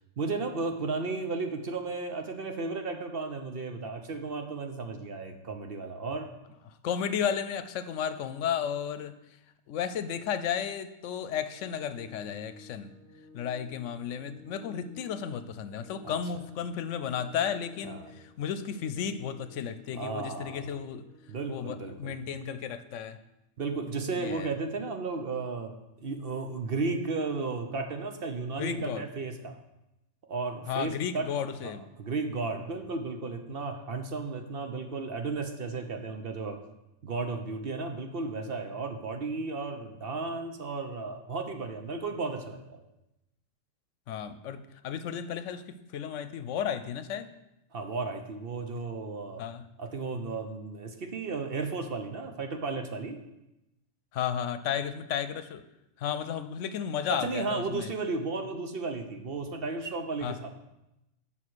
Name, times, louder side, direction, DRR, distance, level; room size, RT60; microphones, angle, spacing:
voice 1, 0.2-6.3 16.0-16.2 17.8-18.1 19.9-20.7 21.3-22.1 23.6-25.7 26.0-29.6 30.3-31.3 31.6-36.6 37.0-42.8 47.7-49.4 49.8-53.2 57.1-60.5, right 3 dB, 55° right, 5 dB, 0.9 m, -34 dB
voice 2, 6.8-9.1 9.7-12.9 13.3-21.1 21.5-23.2 24.2-24.5 28.6-29.0 30.7-31.9 44.1-47.3 49.4-49.7 54.1-55.6 56.0-57.9 60.2-60.4, left 8 dB, 80° left, 12 dB, 0.9 m, -33 dB
Organ, 11.3-22.3, left 4 dB, 80° right, 3.4 m, -54 dB
7.3 x 5.7 x 6.2 m, 0.92 s
omnidirectional pair, 1.3 m